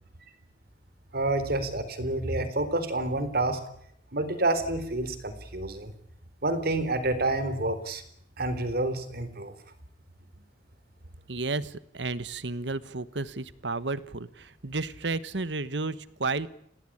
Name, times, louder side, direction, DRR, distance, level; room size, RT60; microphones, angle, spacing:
voice 1, 1.1-3.6 4.1-5.9 6.4-8.0 8.4-9.5, right 2 dB, 60° right, 12 dB, 3.8 m, -28 dB
voice 2, 11.3-16.5, right 3 dB, 75° right, 16 dB, 1.3 m, -32 dB
28.5 x 18.5 x 8.8 m, 0.71 s
head